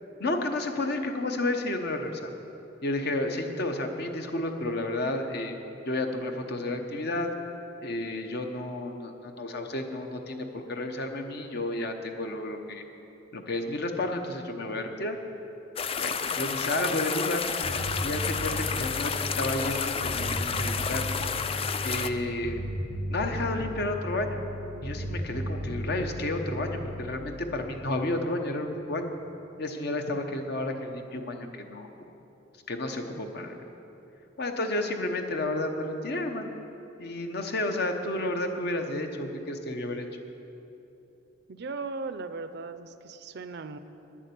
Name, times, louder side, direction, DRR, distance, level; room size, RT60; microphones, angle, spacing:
voice 1, 0.2-2.3 2.8-5.6 5.9-7.3 7.8-12.8 13.3-15.2 16.0-17.4 18.0-21.1 21.8-22.6 23.1-24.4 24.8-29.1 29.6-31.9 32.7-33.6 34.4-36.5 37.0-40.1, left 2 dB, 60° left, 5 dB, 0.9 m, -31 dB
sound 1, 15.8-22.1, left 6 dB, 30° left, 0.4 m, -31 dB
Bass guitar, 17.6-27.2, equal, 80° left, 1.3 m, -35 dB
voice 2, 41.5-43.8, right 4 dB, 60° right, 11 dB, 0.5 m, -37 dB
10.0 x 7.3 x 8.4 m, 3.0 s
head